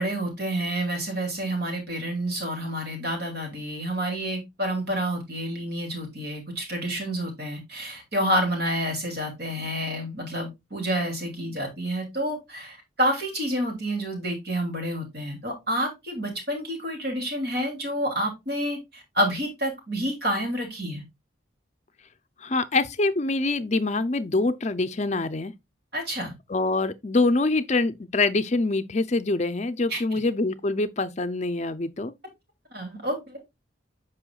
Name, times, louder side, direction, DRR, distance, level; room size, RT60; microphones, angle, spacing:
voice 1, 0.0-21.0 25.9-26.3 29.9-30.0 32.7-33.4, right 1 dB, 55° right, 2.7 m, -29 dB
voice 2, 22.4-25.5 26.5-32.1, left 3 dB, 35° left, 0.5 m, -25 dB
8.0 x 5.6 x 2.3 m
head